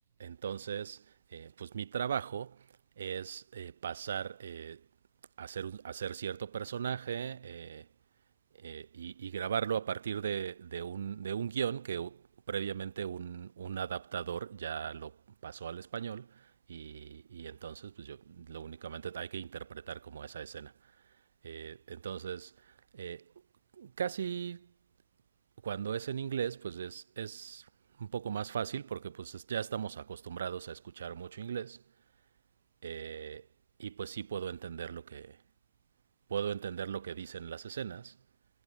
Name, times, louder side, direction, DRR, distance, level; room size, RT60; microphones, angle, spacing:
voice 1, 0.2-2.7 3.0-4.9 5.4-7.9 8.5-15.2 15.4-20.9 21.4-23.3 23.7-24.7 25.6-27.7 28.0-31.8 32.8-33.5 33.8-35.4 36.3-38.2, right 8 dB, 65° right, 4.1 m, -38 dB
figure-of-eight pair, 90°, 0 cm